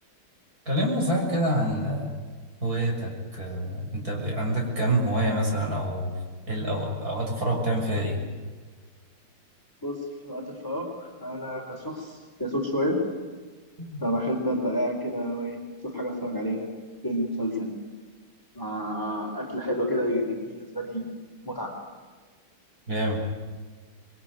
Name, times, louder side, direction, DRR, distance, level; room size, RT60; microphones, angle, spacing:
voice 1, 0.7-2.2 2.6-6.1 6.5-8.2 13.8-14.0 22.9-23.2, right 1 dB, 40° right, 0 dB, 6.9 m, -27 dB
voice 2, 10.2-13.0 14.0-15.6 15.9-16.7 17.0-17.7 18.5-21.2 21.4-21.7, equal, 10° left, 2 dB, 4.3 m, -29 dB
27.0 x 22.5 x 9.5 m, 1.4 s
omnidirectional pair, 2.4 m